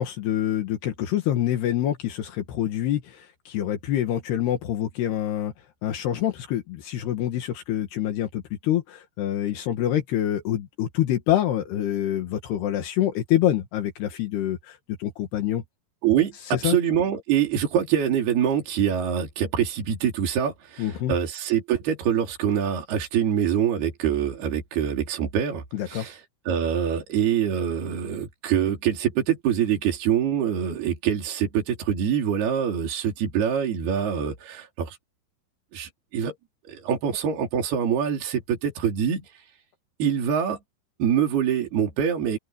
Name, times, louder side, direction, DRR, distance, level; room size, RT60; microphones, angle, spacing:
voice 1, 0.0-5.5 5.8-15.6 16.5-16.8 20.8-21.2 25.7-26.1, left 12 dB, 80° left, 3.7 m, -26 dB
voice 2, 16.0-35.0 35.7-36.4 36.7-39.4 40.0-40.6 41.0-42.4, right 9 dB, 70° right, 5.3 m, -25 dB
omnidirectional pair, 4.7 m